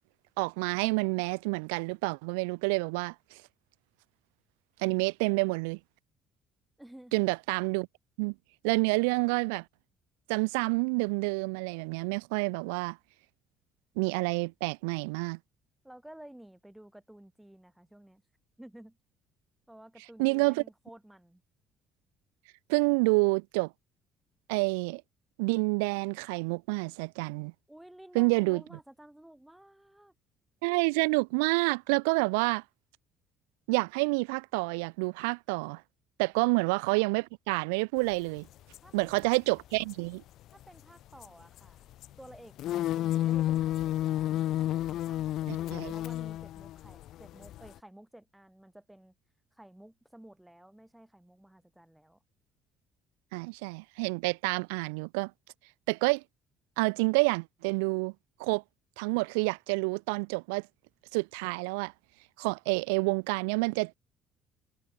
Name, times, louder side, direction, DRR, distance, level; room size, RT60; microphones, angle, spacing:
voice 1, 0.4-3.4 4.8-5.8 7.1-7.9 8.2-8.3 8.6-9.6 10.3-13.0 14.0-15.4 20.2-20.6 22.7-23.7 24.5-25.0 25.4-27.5 28.1-28.6 30.6-32.6 33.7-35.8 36.2-38.5 38.9-40.2 45.5-45.9 53.3-55.3 55.9-56.2 56.8-58.1 58.4-58.6 59.0-60.7 61.1-61.9 62.4-63.9, right 31 dB, 65° right, 0.6 m, -28 dB
voice 2, 6.8-7.1 15.8-18.2 18.6-19.0 19.7-21.4 27.7-30.1 36.4-36.5 38.8-39.4 40.5-41.9 42.2-49.1 49.5-52.2, right 1 dB, 5° right, 7.1 m, -53 dB
sound 1, 38.7-38.8 39.2-39.4 39.7-39.9 41.2-41.7 42.0-42.1 42.3-47.8, left 13 dB, 55° left, 1.0 m, -31 dB
figure-of-eight pair, 50°, 0 cm